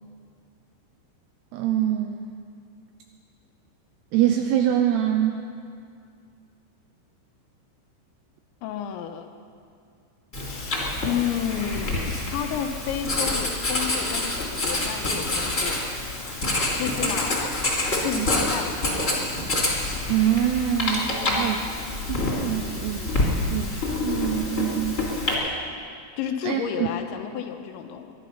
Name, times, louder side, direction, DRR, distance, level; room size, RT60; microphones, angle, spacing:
voice 1, 1.5-2.2 4.1-5.4 17.0-17.2 18.2-18.3 20.1-21.6 22.1-25.1 26.4-26.9, right 11 dB, 85° right, 5 dB, 2.4 m, -25 dB
voice 2, 8.6-9.3 10.5-15.8 16.8-17.7 18.0-19.3 21.2-21.6 26.2-28.1, left 8 dB, 80° left, 6 dB, 3.1 m, -31 dB
Writing, 10.3-25.3, left 2 dB, 20° left, 2.2 m, -27 dB
22.0 x 11.5 x 5.7 m, 2.3 s
omnidirectional pair, 5.5 m